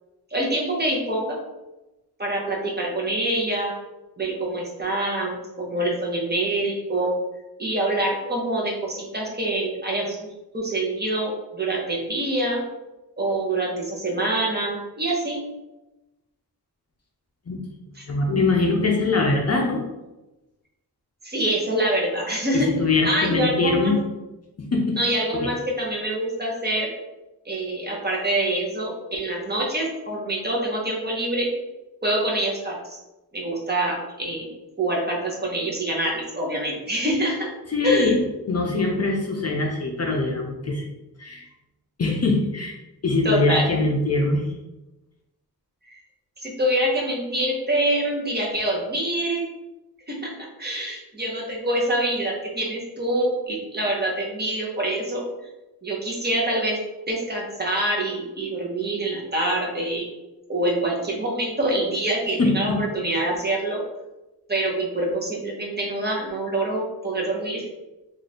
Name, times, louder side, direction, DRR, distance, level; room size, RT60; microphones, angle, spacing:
voice 1, 0.3-1.4 2.2-3.7 4.2-7.2 7.6-12.6 13.2-15.4 18.0-18.1 21.2-22.7 23.0-23.9 25.0-26.9 27.5-31.5 32.0-33.0 33.3-34.5 34.8-37.5 37.8-38.2 43.2-43.7 45.9-46.0 46.4-49.5 50.1-55.2 55.8-56.8 57.1-60.1 60.5-63.8 64.5-67.7, right 1 dB, 25° right, -2 dB, 0.8 m, -25 dB
voice 2, 18.1-19.8 22.5-24.0 24.6-25.0 25.4-25.5 37.7-40.8 41.2-41.5 42.0-42.8 43.0-44.4 62.4-62.8, left 3 dB, 40° left, 0 dB, 0.5 m, -22 dB
3.1 x 2.5 x 4.1 m, 1.0 s
wide cardioid pair, 130°, 40 cm